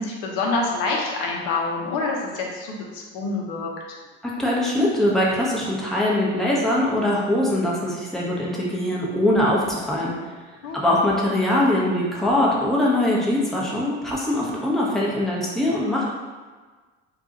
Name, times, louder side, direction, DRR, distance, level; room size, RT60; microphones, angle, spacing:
voice 1, 0.0-3.7 10.6-10.8, left 3 dB, 65° left, -1 dB, 0.8 m, -26 dB
voice 2, 4.2-10.1 10.7-16.1, left 1 dB, ahead, -5 dB, 0.8 m, -22 dB
2.5 x 2.3 x 4.0 m, 1.4 s
hypercardioid pair, 80°, 34 cm